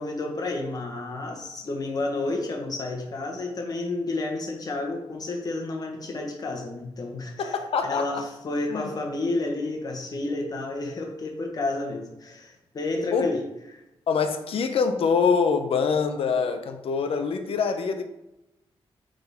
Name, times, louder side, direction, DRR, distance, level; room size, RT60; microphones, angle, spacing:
voice 1, 0.0-7.6 7.8-13.4 13.7-13.8, left 2 dB, 40° left, 2 dB, 1.2 m, -30 dB
voice 2, 7.4-8.2 8.7-8.9 13.1-13.3 14.1-18.1, left 5 dB, 70° left, 7 dB, 0.6 m, -25 dB
8.0 x 3.8 x 3.5 m, 0.93 s
wide cardioid pair, 175°, 10 cm